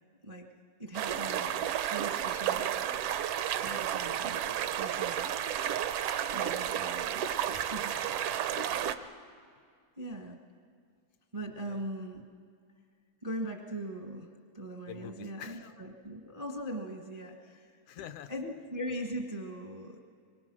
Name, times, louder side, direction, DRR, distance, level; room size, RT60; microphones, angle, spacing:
voice 1, 0.8-2.7 3.6-5.4 6.3-7.1 7.5-7.9 10.0-10.4 11.3-12.2 13.2-14.3 14.5-17.8 18.3-20.0, right 1 dB, 35° right, 2 dB, 0.5 m, -40 dB
sound 1, 0.9-8.9, right 10 dB, 75° right, 1.4 m, -32 dB
voice 2, 7.9-9.0 11.7-11.9 14.9-15.7 17.9-18.3, left 9 dB, 85° left, 10 dB, 2.2 m, -47 dB
24.5 x 24.0 x 6.2 m, 2.1 s
omnidirectional pair, 3.3 m